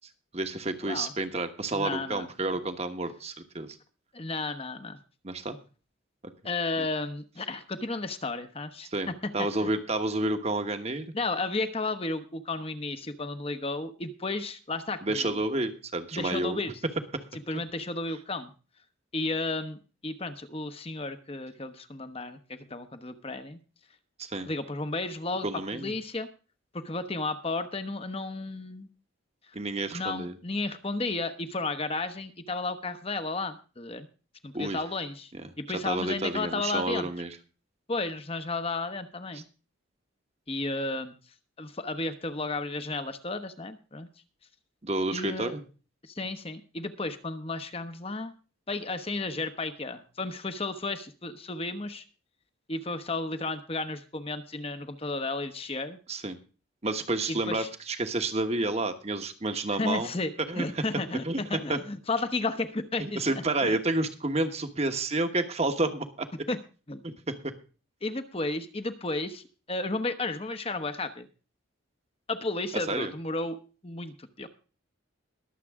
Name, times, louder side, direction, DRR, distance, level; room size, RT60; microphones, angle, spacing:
voice 1, 0.3-3.8 5.2-5.6 6.8-6.9 8.9-11.1 15.0-16.6 24.2-24.5 25.4-25.9 29.5-30.4 34.5-34.8 35.3-35.4 35.8-37.4 44.8-45.6 56.1-56.4 56.8-60.1 60.5-60.8 61.2-61.4 61.7-61.8 63.0-66.3 67.0-67.5 72.9-73.1, right 2 dB, 30° right, 8 dB, 1.2 m, -30 dB
voice 2, 1.7-2.3 4.1-5.0 6.4-9.2 9.6-9.7 11.1-15.4 16.1-16.7 17.5-18.5 19.1-23.6 24.5-25.5 25.7-26.3 26.7-28.9 29.9-34.1 34.4-35.3 35.6-37.1 37.9-39.4 40.5-41.1 41.6-44.1 45.1-45.5 46.1-48.3 48.7-52.0 52.7-56.0 57.3-57.7 59.7-63.2 63.6-63.8 66.5-66.6 66.9-67.0 68.0-71.3 72.3-73.6 73.8-74.5, left 3 dB, 25° left, 8 dB, 0.9 m, -33 dB
22.0 x 7.5 x 3.6 m, 0.36 s
head